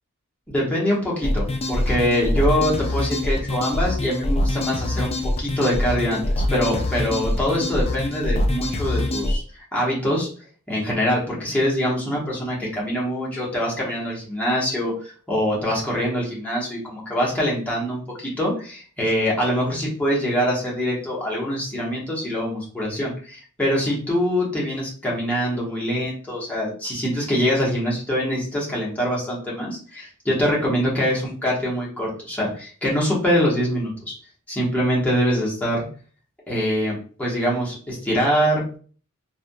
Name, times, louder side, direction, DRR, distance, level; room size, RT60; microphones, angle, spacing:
voice 1, 0.5-10.3 10.7-34.1 34.5-35.9 36.5-38.6, equal, 5° left, -6 dB, 1.1 m, -24 dB
sound 1, 1.2-9.4, left 1 dB, 25° left, 0.4 m, -24 dB
3.4 x 2.7 x 2.2 m, 0.41 s
head